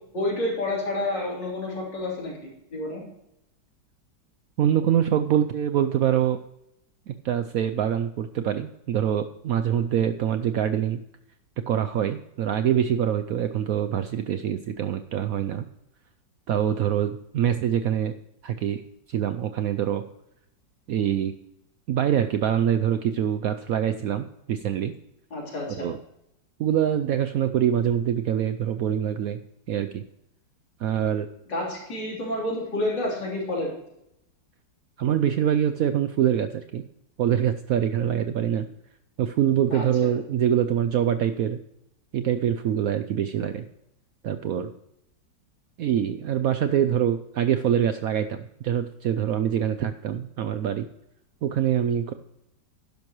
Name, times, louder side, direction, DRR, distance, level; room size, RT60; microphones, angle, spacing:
voice 1, 0.1-3.1 25.3-25.9 31.5-33.7 39.7-39.9, left 1 dB, 80° left, -3 dB, 4.2 m, -29 dB
voice 2, 4.6-6.4 7.1-11.0 11.7-15.6 16.5-18.1 18.4-18.8 19.1-20.0 20.9-21.3 21.9-24.9 25.8-26.0 26.6-29.4 29.7-30.0 30.8-31.3 35.0-36.8 37.2-38.7 39.2-41.6 42.1-43.6 44.2-44.7 45.8-50.9 51.4-52.1, right 9 dB, 70° right, 9 dB, 0.8 m, -24 dB
12.0 x 10.5 x 3.0 m, 0.81 s
omnidirectional pair, 1.9 m